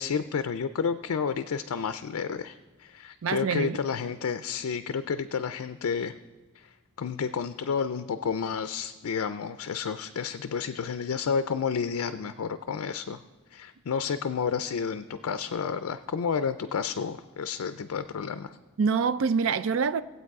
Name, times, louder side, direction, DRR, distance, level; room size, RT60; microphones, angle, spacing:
voice 1, 0.0-6.1 6.6-13.2 13.5-18.6, left 6 dB, 80° left, 0.4 m, -31 dB
voice 2, 3.2-3.8 18.8-20.0, right 5 dB, 65° right, 0.4 m, -25 dB
18.0 x 8.1 x 4.7 m
head